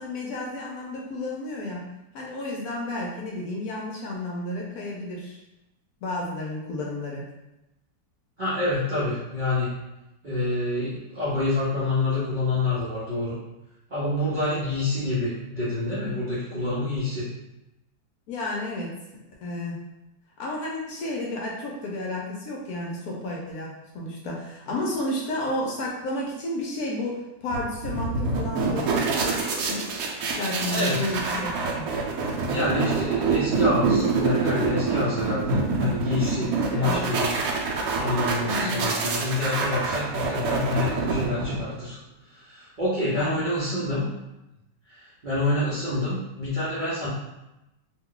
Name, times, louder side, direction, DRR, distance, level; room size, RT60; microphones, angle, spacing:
voice 1, 0.0-1.8 2.1-5.4 6.0-7.3 18.3-18.9 19.4-19.8 20.4-29.9 30.4-31.9 36.7-37.0 38.4-38.9 43.1-43.4, left 1 dB, 70° left, -2 dB, 1.0 m, -32 dB
voice 2, 8.4-9.7 10.2-13.3 13.9-17.3 30.7-31.0 32.4-37.3 38.0-42.0 42.3-44.1 44.9-47.1, left 2 dB, 50° right, -11 dB, 0.5 m, -27 dB
sound 1, 27.5-41.9, right 4 dB, 70° right, 0.9 m, -26 dB
2.9 x 2.2 x 3.7 m, 0.94 s
omnidirectional pair, 1.9 m